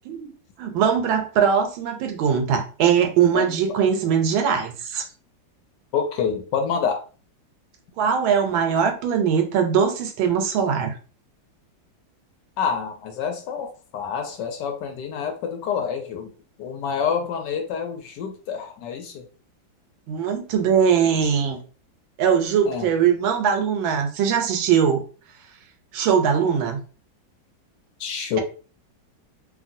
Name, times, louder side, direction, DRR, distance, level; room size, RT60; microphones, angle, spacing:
voice 1, 0.6-5.1 8.0-11.0 20.1-21.6 22.2-25.0 25.9-26.8, right 7 dB, 85° right, 1.4 m, -21 dB
voice 2, 5.9-7.0 12.6-16.3 16.6-19.3 21.2-21.3 22.7-22.9 28.0-28.4, left 6 dB, 70° left, 1.1 m, -27 dB
3.0 x 2.6 x 2.5 m
omnidirectional pair, 2.1 m